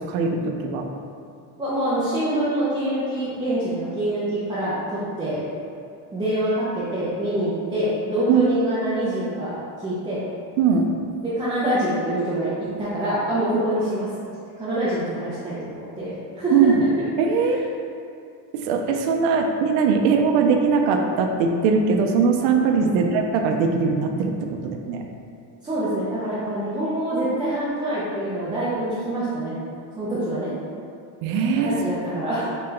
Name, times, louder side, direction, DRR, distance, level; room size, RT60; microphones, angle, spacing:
voice 1, 0.1-0.9 8.3-8.4 10.6-10.9 16.5-16.9 17.2-17.7 18.5-25.0 31.2-31.7, right 5 dB, 65° right, 3 dB, 0.6 m, -20 dB
voice 2, 1.6-5.4 6.1-10.2 11.2-14.1 14.6-16.7 22.8-23.0 25.6-29.6 30.0-30.5 31.6-32.5, right 1 dB, 10° right, -11 dB, 0.3 m, -25 dB
4.0 x 2.2 x 3.7 m, 2.4 s
cardioid pair, 135°, 50 cm